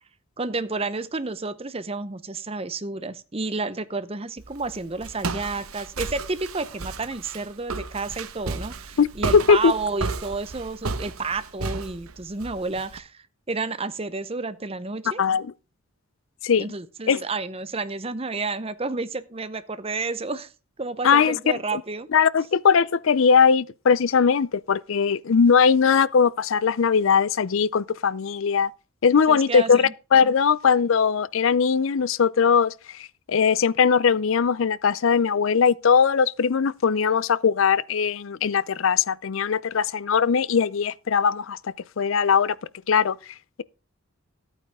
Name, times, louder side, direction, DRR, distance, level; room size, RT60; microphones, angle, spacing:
voice 1, 0.4-15.2 16.6-20.5 20.8-22.1 29.3-29.9, right 3 dB, 25° right, 0.8 m, -31 dB
Walk footsteps, 4.4-13.0, right 4 dB, 85° right, 1.1 m, -33 dB
voice 2, 9.0-9.7 15.2-15.5 16.4-16.6 17.1-17.2 21.0-21.4 21.7-21.8 22.1-28.7 29.0-42.6 42.9-43.2, left 6 dB, 65° left, 0.5 m, -20 dB
14.0 x 9.1 x 3.6 m
head